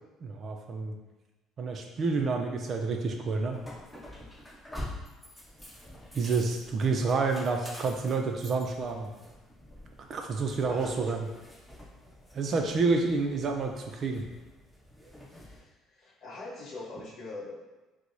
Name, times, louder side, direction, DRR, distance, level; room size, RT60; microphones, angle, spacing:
voice 1, 0.2-1.0 1.6-3.6 6.1-9.1 10.1-11.3 12.3-14.3, right 4 dB, 40° right, 3 dB, 0.4 m, -29 dB
sound 1, 3.5-15.6, left 1 dB, 10° left, 1.2 m, -47 dB
voice 2, 10.6-11.2 15.3-17.5, left 2 dB, 55° left, -3 dB, 0.8 m, -43 dB
4.4 x 2.0 x 2.6 m, 1.1 s
cardioid pair, 125°, 0 cm